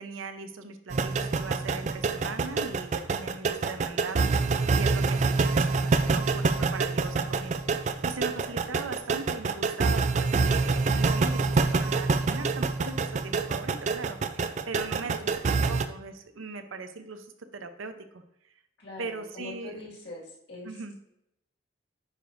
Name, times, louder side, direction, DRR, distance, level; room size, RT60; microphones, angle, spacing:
voice 1, 0.0-4.3 4.7-18.2 19.0-19.8 20.6-21.1, right 3 dB, 90° right, 8 dB, 0.7 m, -39 dB
sound 1, 0.9-15.9, right 4 dB, 35° right, 0.3 m, -26 dB
voice 2, 18.8-20.8, left 2 dB, 55° left, -3 dB, 1.9 m, -44 dB
9.3 x 5.1 x 2.6 m, 0.80 s
head